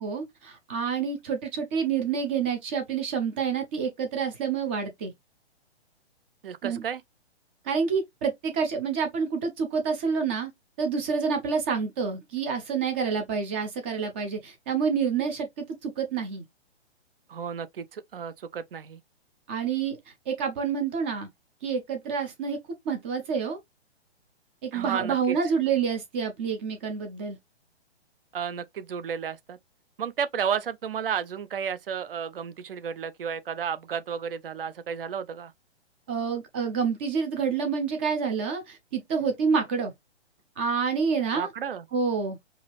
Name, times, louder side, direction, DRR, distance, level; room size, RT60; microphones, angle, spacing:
voice 1, 0.0-5.1 6.6-6.8 7.6-10.5 10.8-16.4 19.5-20.0 20.3-21.3 21.6-22.6 22.8-23.6 24.6-27.4 36.1-39.9 40.6-41.5 41.9-42.4, right 6 dB, 10° right, 0.4 m, -28 dB
voice 2, 6.4-7.0 17.3-19.0 24.7-25.4 28.3-29.6 30.0-35.5 41.3-41.8, right 7 dB, 55° right, 0.7 m, -32 dB
4.8 x 2.7 x 3.0 m
figure-of-eight pair, 125°, 34 cm